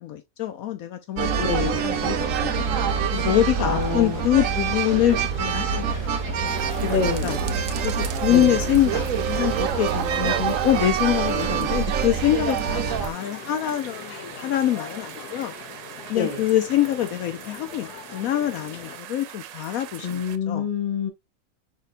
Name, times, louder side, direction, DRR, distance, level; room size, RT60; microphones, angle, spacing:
voice 1, 0.0-2.7 3.1-5.9 7.0-7.6 7.8-10.3 10.6-15.6 16.1-20.2 20.5-20.6, left 12 dB, 75° left, 1.0 m, -25 dB
sound 1, 1.2-19.0, left 8 dB, 90° left, 1.2 m, -41 dB
sound 2, 1.2-13.1, right 7 dB, 70° right, 0.9 m, -25 dB
voice 2, 1.4-1.9 3.6-4.3 6.9-7.5 8.3-8.7 10.1-10.6 16.1-16.4 20.0-21.1, left 6 dB, 35° left, 1.0 m, -27 dB
sound 3, 6.5-20.4, right 11 dB, 90° right, 1.1 m, -43 dB
5.2 x 4.1 x 2.2 m
omnidirectional pair, 1.6 m